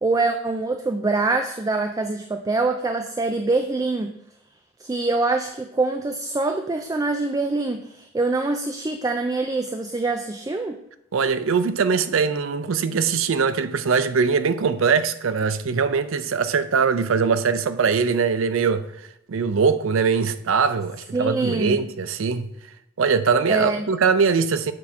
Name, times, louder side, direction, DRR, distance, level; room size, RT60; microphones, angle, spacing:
voice 1, 0.0-4.1 4.8-10.8 21.1-21.9 23.5-23.9, right 3 dB, 15° right, 0.3 m, -24 dB
voice 2, 11.1-18.9 19.3-22.5 23.0-24.7, right 5 dB, 80° right, 0.5 m, -21 dB
7.6 x 4.3 x 4.6 m
head